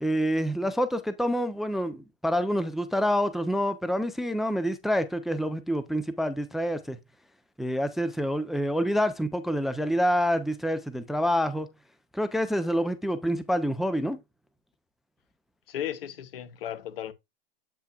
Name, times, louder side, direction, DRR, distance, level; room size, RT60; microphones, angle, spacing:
voice 1, 0.0-7.0 7.6-11.7 12.1-14.2, equal, ahead, 0.5 m, -27 dB
voice 2, 15.7-17.1, left 10 dB, 70° left, 1.0 m, -35 dB
8.3 x 5.6 x 2.4 m
hypercardioid pair, 105°, 30 cm